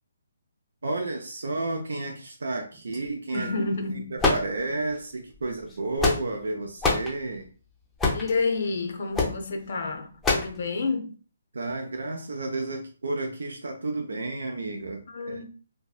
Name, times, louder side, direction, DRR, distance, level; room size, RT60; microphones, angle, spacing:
voice 1, 0.8-3.5 3.9-7.5 11.5-15.0 15.3-15.4, right 2 dB, 80° right, 0.4 m, -31 dB
sound 1, 2.7-3.9 4.8-5.0 6.0-6.1, right 3 dB, 20° right, 1.0 m, -45 dB
voice 2, 3.3-4.2 8.1-11.1 15.1-15.4, left 3 dB, 60° left, 0.5 m, -29 dB
sound 2, 4.2-5.0 5.7-6.5 6.8-7.1 8.0-8.3 9.1-9.4 10.2-10.6, left 3 dB, 10° left, 0.5 m, -24 dB
2.6 x 2.2 x 2.3 m
hypercardioid pair, 155°, 0 cm